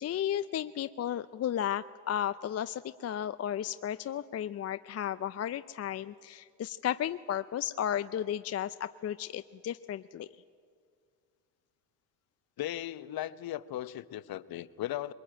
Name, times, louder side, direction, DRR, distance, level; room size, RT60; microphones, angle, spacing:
voice 1, 0.0-10.3, left 10 dB, 30° left, 13 dB, 0.5 m, -34 dB
voice 2, 12.6-15.1, left 13 dB, 45° left, 16 dB, 0.9 m, -37 dB
22.0 x 21.5 x 9.0 m, 2.2 s
hypercardioid pair, 75°, 48 cm